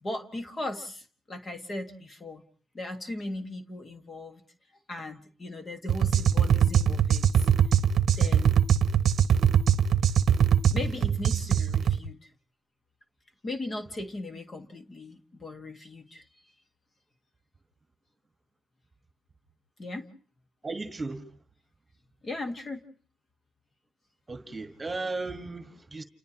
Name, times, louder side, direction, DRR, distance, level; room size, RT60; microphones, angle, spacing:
voice 1, 0.0-2.4 2.7-4.4 4.9-7.5 8.2-8.6 10.7-12.3 13.4-16.2 19.8-20.1 22.2-22.8, left 2 dB, 35° left, 1.8 m, -38 dB
sound 1, 5.9-12.0, right 8 dB, 60° right, 0.9 m, -22 dB
voice 2, 20.6-21.2 24.3-26.0, right 3 dB, 20° right, 1.7 m, -35 dB
29.5 x 29.0 x 3.0 m
cardioid pair, 90°, 0 cm